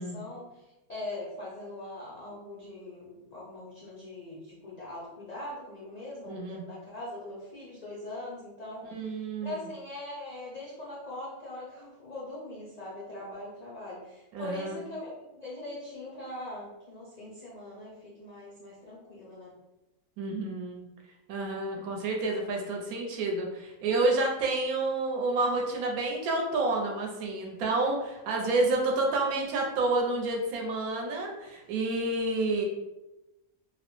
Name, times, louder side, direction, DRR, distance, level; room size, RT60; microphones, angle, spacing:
voice 1, 0.0-19.5 28.6-28.9, left 1 dB, 80° left, -6 dB, 0.3 m, -41 dB
voice 2, 6.3-6.6 8.9-9.6 14.3-14.8 20.2-20.9 21.3-32.6, right 2 dB, 80° right, 0 dB, 1.0 m, -29 dB
2.6 x 2.0 x 2.9 m, 0.99 s
omnidirectional pair, 1.5 m